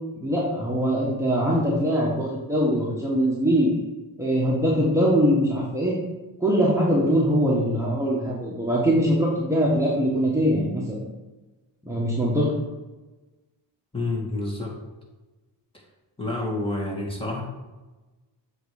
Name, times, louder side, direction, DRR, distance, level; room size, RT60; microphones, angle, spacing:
voice 1, 0.2-3.7 4.2-6.0 6.4-11.0 11.8-12.5, equal, 5° right, -5 dB, 1.6 m, -22 dB
voice 2, 13.9-14.7 16.2-17.4, left 2 dB, 10° left, -2 dB, 2.0 m, -29 dB
7.9 x 3.2 x 4.9 m, 1.2 s
cardioid pair, 55°, 46 cm